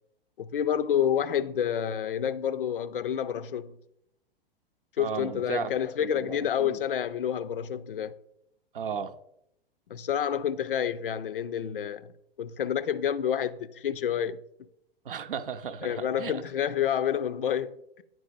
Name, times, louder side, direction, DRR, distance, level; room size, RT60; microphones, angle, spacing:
voice 1, 0.4-3.8 5.0-8.2 9.9-12.1 12.4-14.4 15.8-18.0, left 9 dB, 65° left, 0.5 m, -29 dB
voice 2, 5.0-5.7 6.0-6.8 8.7-9.2 15.0-16.4, right 6 dB, 65° right, 0.7 m, -35 dB
9.3 x 4.8 x 3.9 m
figure-of-eight pair, 105°, 30 cm